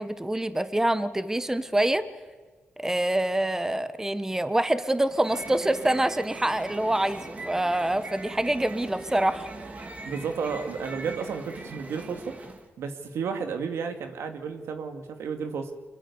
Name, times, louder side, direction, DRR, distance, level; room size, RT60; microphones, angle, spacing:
voice 1, 0.0-2.0 2.8-9.5, right 1 dB, 10° right, 12 dB, 1.3 m, -26 dB
sound 1, 5.0-12.7, right 2 dB, 35° right, 3.3 m, -41 dB
voice 2, 10.1-12.4 12.8-15.7, right 6 dB, 85° right, 6 dB, 2.6 m, -32 dB
25.5 x 22.5 x 7.1 m, 1.4 s
cardioid pair, 85°, 4 cm